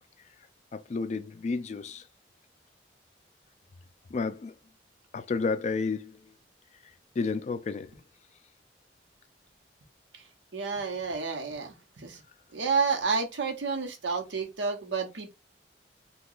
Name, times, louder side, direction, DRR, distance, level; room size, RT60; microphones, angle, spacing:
voice 1, 0.7-2.0 4.1-4.5 5.1-6.3 7.2-7.9, left 4 dB, 40° left, 0.3 m, -31 dB
voice 2, 10.5-12.2 12.5-15.3, right 5 dB, 90° right, 0.8 m, -30 dB
2.8 x 2.3 x 3.8 m
head